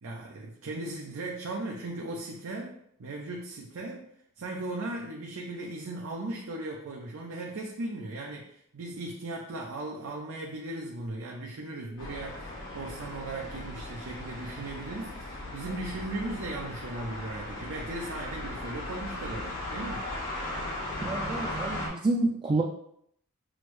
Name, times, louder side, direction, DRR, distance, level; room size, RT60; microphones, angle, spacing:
voice 1, 0.0-2.7 3.0-4.1 4.4-20.1, right 2 dB, 80° right, -1 dB, 0.5 m, -37 dB
sound 1, 12.0-21.9, left 1 dB, 85° left, 1.2 m, -37 dB
voice 2, 21.0-22.6, right 2 dB, 25° right, -1 dB, 0.3 m, -28 dB
6.2 x 2.1 x 3.1 m, 0.71 s
head